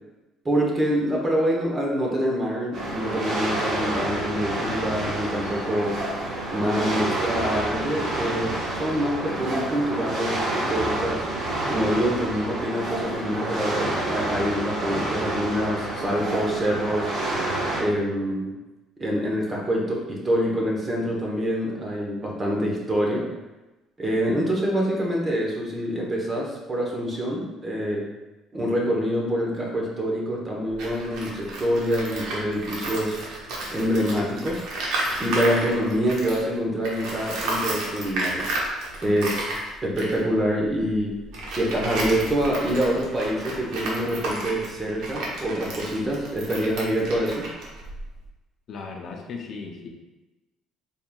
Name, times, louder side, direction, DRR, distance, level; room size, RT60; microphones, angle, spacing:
voice 1, 0.4-6.0 6.5-8.5 8.8-11.3 11.7-17.1 17.8-18.5 19.0-23.3 24.0-28.1 28.5-33.2 33.7-34.6 35.2-38.5 39.0-39.6 39.8-41.2 41.5-47.5, equal, 25° right, -2 dB, 0.9 m, -26 dB
sound 1, 2.7-17.8, right 2 dB, 55° right, 1.2 m, -28 dB
Tools, 30.7-36.5 36.8-48.3, right 2 dB, 75° right, 0.9 m, -32 dB
voice 2, 48.7-49.9, left 4 dB, 50° left, 1 dB, 0.6 m, -36 dB
4.3 x 3.5 x 2.3 m, 1.1 s
cardioid pair, 115°, 0 cm